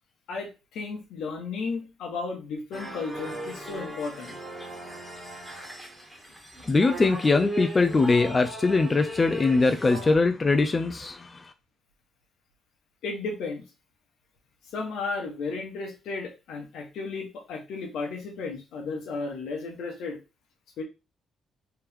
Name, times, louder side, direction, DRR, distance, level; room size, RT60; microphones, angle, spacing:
voice 1, 0.3-4.4 13.0-13.6 14.7-20.2 20.8-20.9, left 4 dB, 80° left, 3 dB, 1.1 m, -34 dB
sound 1, 2.7-10.2, right 1 dB, 5° right, 1.4 m, -38 dB
voice 2, 6.7-11.3, left 3 dB, 30° left, 6 dB, 0.4 m, -22 dB
3.4 x 3.0 x 3.5 m, 0.29 s
cardioid pair, 90°, 0 cm